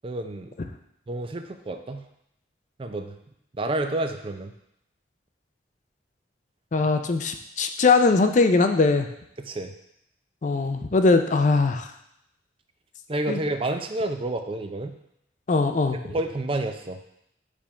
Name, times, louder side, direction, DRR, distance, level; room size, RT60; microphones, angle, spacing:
voice 1, 0.0-0.6 1.1-2.1 2.8-3.2 3.5-4.5 9.4-9.7 13.1-15.0 16.0-17.0, right 2 dB, 30° right, 7 dB, 0.4 m, -29 dB
voice 2, 6.7-9.1 10.4-11.9 13.3-13.4 15.5-16.0, left 3 dB, 40° left, 7 dB, 0.4 m, -21 dB
5.0 x 3.5 x 5.5 m, 0.78 s
head